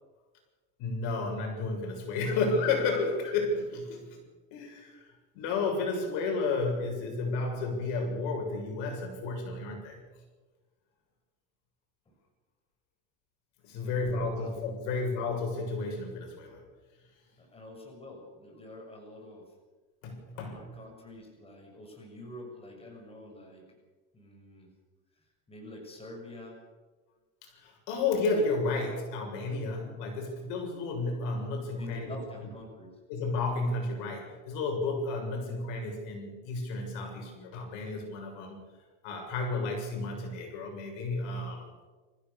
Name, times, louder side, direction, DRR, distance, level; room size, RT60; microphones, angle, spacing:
voice 1, 0.8-4.2 4.5-5.1 5.3-10.0 13.6-16.6 20.0-20.6 27.4-32.1 33.1-38.6 39.0-41.7, left 3 dB, 65° left, 2 dB, 7.2 m, -32 dB
voice 2, 13.8-15.0 17.4-19.5 20.3-23.7 24.1-24.7 25.1-26.6 31.8-33.0, left 1 dB, 15° left, 1 dB, 6.5 m, -47 dB
27.5 x 15.5 x 6.9 m, 1.3 s
supercardioid pair, 125°, 34 cm